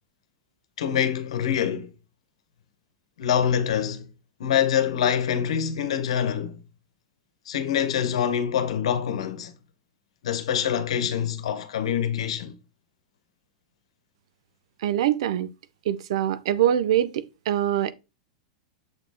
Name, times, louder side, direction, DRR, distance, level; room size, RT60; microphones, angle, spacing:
voice 1, 0.8-1.9 3.2-4.1 4.4-6.6 7.5-9.5 10.2-12.5, left 8 dB, 75° left, 1.1 m, -25 dB
voice 2, 14.8-15.5 15.9-17.9, right 11 dB, 70° right, 0.6 m, -24 dB
7.1 x 4.2 x 3.5 m
hypercardioid pair, 100°, 3 cm